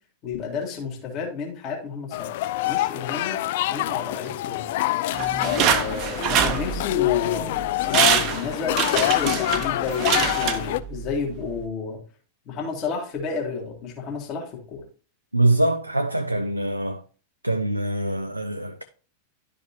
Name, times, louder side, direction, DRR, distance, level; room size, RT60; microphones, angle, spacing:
voice 1, 0.2-2.4 2.7-4.7 5.4-12.0 12.5-14.8, left 5 dB, 35° left, 2.0 m, -31 dB
sound 1, 2.1-10.8, left 15 dB, 50° left, 0.3 m, -26 dB
sound 2, 5.1-7.1 7.6-7.7 7.9-11.1 11.4-11.5, right 8 dB, 40° right, 0.8 m, -24 dB
voice 2, 15.3-17.0 17.4-18.8, right 1 dB, 85° right, 0.4 m, -23 dB
11.0 x 5.0 x 2.8 m
figure-of-eight pair, 90°, 0 cm